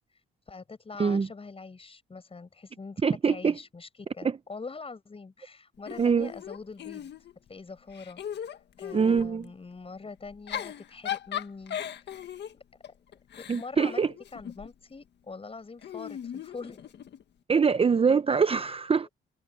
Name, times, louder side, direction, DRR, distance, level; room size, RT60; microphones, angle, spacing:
voice 1, 0.5-7.1 7.5-8.2 8.8-11.8 13.4-14.0 14.3-16.9 19.0-19.1, left 4 dB, 30° left, 7.0 m, -43 dB
voice 2, 3.0-3.6 4.2-4.4 6.0-6.3 8.9-9.5 13.5-14.1 17.5-19.1, right 5 dB, 30° right, 0.7 m, -24 dB
Giggle / Chuckle chortle, 5.9-7.5 7.9-9.3 10.3-14.7 15.8-17.2, left 9 dB, 60° left, 1.7 m, -38 dB
cardioid pair, 90°, 20 cm